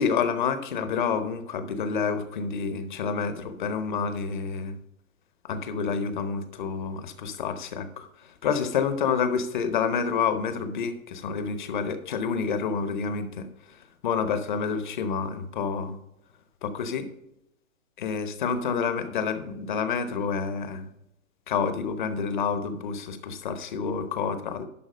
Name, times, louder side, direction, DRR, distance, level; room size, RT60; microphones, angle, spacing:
voice 1, 0.0-4.8 5.4-16.0 16.6-17.1 18.0-20.9 21.5-24.7, left 6 dB, 35° left, 11 dB, 1.0 m, -28 dB
11.5 x 4.4 x 6.4 m, 0.84 s
hypercardioid pair, 150°, 41 cm